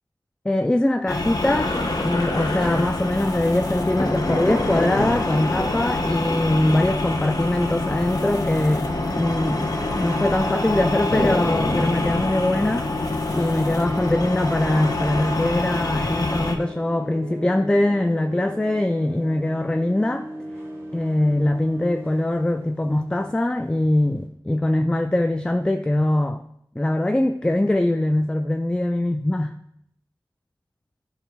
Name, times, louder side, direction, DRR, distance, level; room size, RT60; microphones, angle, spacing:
voice 1, 0.5-1.7 2.0-9.7 10.0-12.9 13.3-20.3 20.9-26.5 26.8-29.5, left 1 dB, 10° left, 7 dB, 0.3 m, -22 dB
sound 1, 1.1-16.6, left 2 dB, 45° left, 0.9 m, -26 dB
sound 2, 1.4-12.3, left 1 dB, 75° left, 1.5 m, -31 dB
sound 3, 6.7-24.2, equal, 35° right, 1.9 m, -39 dB
11.0 x 5.6 x 2.3 m, 0.73 s
wide cardioid pair, 55°, 8 cm